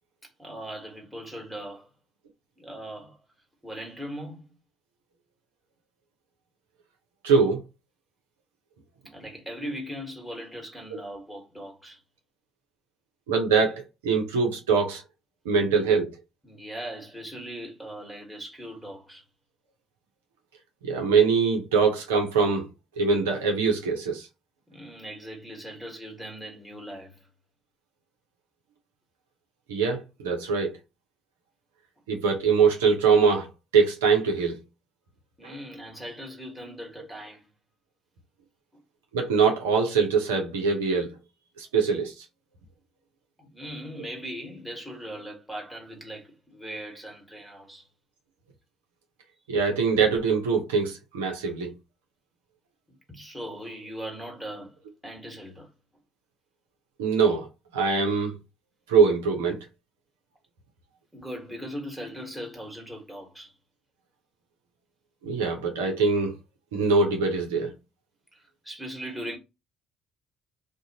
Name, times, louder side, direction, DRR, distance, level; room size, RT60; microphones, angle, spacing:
voice 1, 0.2-1.9 2.6-3.2 3.6-4.6 9.0-12.0 16.4-19.2 24.7-27.3 35.4-37.5 43.4-47.9 53.1-55.7 61.1-63.5 68.3-69.4, equal, ahead, 1.3 m, -39 dB
voice 2, 7.2-7.6 13.3-15.0 15.4-16.1 20.8-22.7 23.0-24.3 29.7-30.7 32.1-33.5 33.7-34.6 35.4-35.5 39.1-41.1 41.6-42.1 49.5-51.7 57.0-57.5 57.7-58.3 58.9-59.6 65.2-66.3 66.7-67.7, right 5 dB, 80° right, 0.6 m, -23 dB
2.5 x 2.1 x 2.7 m
hypercardioid pair, 55°, 0 cm